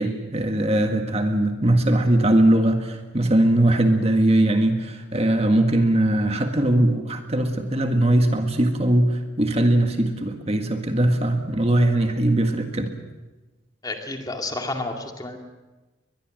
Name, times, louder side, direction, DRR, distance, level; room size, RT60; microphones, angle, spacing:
voice 1, 0.0-12.9, right 1 dB, 30° right, 5 dB, 1.7 m, -20 dB
voice 2, 13.8-15.4, left 2 dB, 20° left, 3 dB, 2.3 m, -30 dB
23.0 x 21.0 x 7.8 m, 1.2 s
head